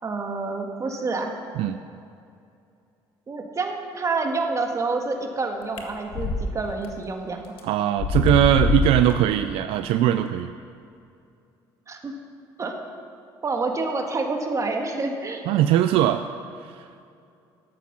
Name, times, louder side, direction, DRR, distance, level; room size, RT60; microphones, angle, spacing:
voice 1, 0.0-1.4 3.3-7.4 11.9-12.1 12.6-12.8 13.4-15.4, right 3 dB, 35° right, 3 dB, 1.7 m, -28 dB
sound 1, 5.8-6.4 6.8-6.9 7.6-7.7 8.0-9.1, left 4 dB, 70° left, 1.5 m, -23 dB
voice 2, 7.6-10.5 15.5-16.3 16.8-16.9, right 11 dB, 75° right, 9 dB, 0.4 m, -20 dB
13.0 x 8.6 x 5.9 m, 2.5 s
supercardioid pair, 80°, 10 cm